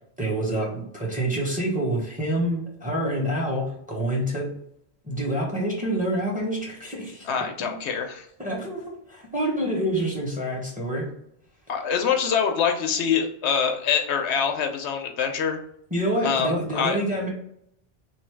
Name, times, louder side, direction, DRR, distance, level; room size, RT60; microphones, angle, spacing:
voice 1, 0.2-4.5 5.0-7.3 7.6-7.8 8.4-11.1 15.9-17.3, right 1 dB, 10° right, -3 dB, 1.0 m, -27 dB
voice 2, 7.2-8.3 11.7-15.6 16.2-17.0, left 7 dB, 80° left, 5 dB, 0.9 m, -25 dB
3.1 x 2.6 x 4.5 m, 0.70 s
omnidirectional pair, 1.1 m